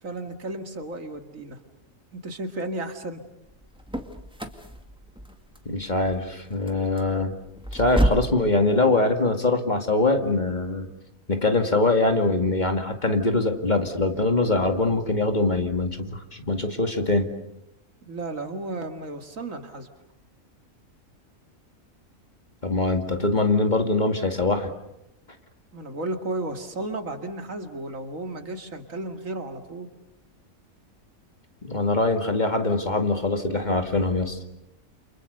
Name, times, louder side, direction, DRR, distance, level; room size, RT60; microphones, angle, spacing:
voice 1, 0.0-1.6 2.1-3.2 18.0-19.9 25.7-29.9, right 2 dB, 70° right, 6 dB, 2.6 m, -33 dB
sound 1, 3.4-8.4, right 1 dB, 5° right, 2.0 m, -30 dB
voice 2, 5.7-7.4 7.7-10.9 11.3-17.3 22.6-24.7 31.6-34.4, left 2 dB, 30° left, 5 dB, 2.2 m, -23 dB
29.5 x 28.5 x 6.8 m, 0.84 s
omnidirectional pair, 1.4 m